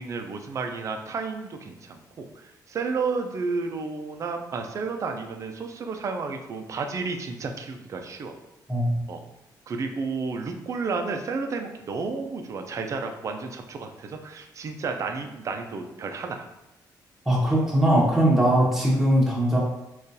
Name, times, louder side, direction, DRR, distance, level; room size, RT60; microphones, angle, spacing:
voice 1, 0.0-8.3 9.1-9.2 9.7-16.5, right 4 dB, 45° right, 5 dB, 0.4 m, -32 dB
voice 2, 17.3-19.6, right 1 dB, 5° right, -5 dB, 0.9 m, -20 dB
3.7 x 2.3 x 2.7 m, 0.93 s
cardioid pair, 125°, 8 cm